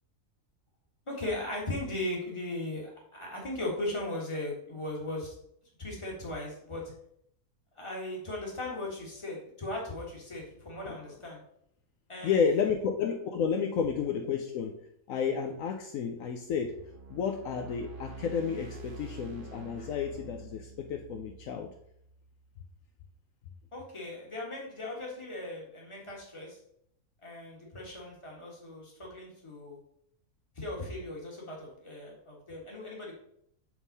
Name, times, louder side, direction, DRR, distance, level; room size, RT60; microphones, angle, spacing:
voice 1, 1.1-5.3 5.8-6.9 7.7-11.4 12.1-12.4 23.7-26.6 27.2-29.8 30.5-33.1, left 1 dB, 20° left, -2 dB, 1.6 m, -38 dB
voice 2, 12.2-14.8 15.1-16.8 17.1-21.7, left 6 dB, 75° left, 4 dB, 1.0 m, -31 dB
sound 1, 16.4-22.6, right 3 dB, 45° right, 0.8 m, -47 dB
7.1 x 3.7 x 4.0 m, 0.71 s
omnidirectional pair, 1.5 m